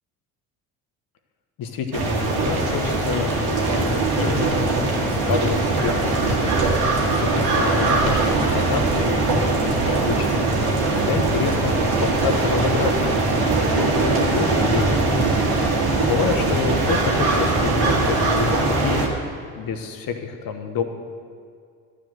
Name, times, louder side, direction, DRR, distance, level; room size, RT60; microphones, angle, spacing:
voice 1, 1.6-6.5 6.9-13.1 13.5-14.9 15.7-19.0 19.5-20.8, left 6 dB, 55° left, 6 dB, 1.2 m, -28 dB
sound 1, 1.9-19.1, right 3 dB, 70° right, 1.9 m, -21 dB
11.5 x 5.1 x 7.6 m, 2.2 s
hypercardioid pair, 60°, 41 cm